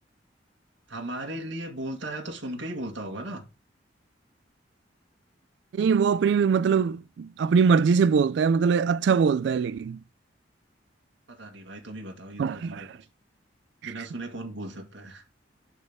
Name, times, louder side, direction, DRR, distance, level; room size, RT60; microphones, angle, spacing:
voice 1, 0.9-3.4 11.3-12.9 13.8-15.2, right 1 dB, 85° right, 1.9 m, -37 dB
voice 2, 5.7-10.0 12.4-12.8, right 6 dB, 65° right, 0.3 m, -22 dB
11.5 x 4.2 x 3.6 m
head